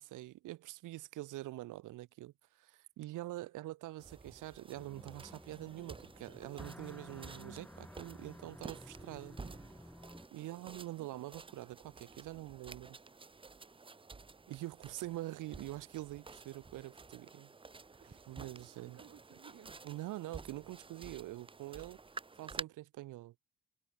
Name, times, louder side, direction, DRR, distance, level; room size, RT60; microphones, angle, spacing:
voice 1, 0.0-9.4 10.3-13.0 14.5-17.5 18.3-19.0 19.8-22.0 22.4-23.3, right 16 dB, 90° right, 1.8 m, -45 dB
sound 1, 4.0-22.6, right 4 dB, 15° right, 0.8 m, -52 dB
sound 2, 4.7-10.3, left 1 dB, 5° left, 1.1 m, -53 dB
voice 2, 9.4-9.7 10.4-11.1 18.0-18.5 18.7-19.8, right 9 dB, 60° right, 4.0 m, -60 dB
cardioid pair, 90°, 30 cm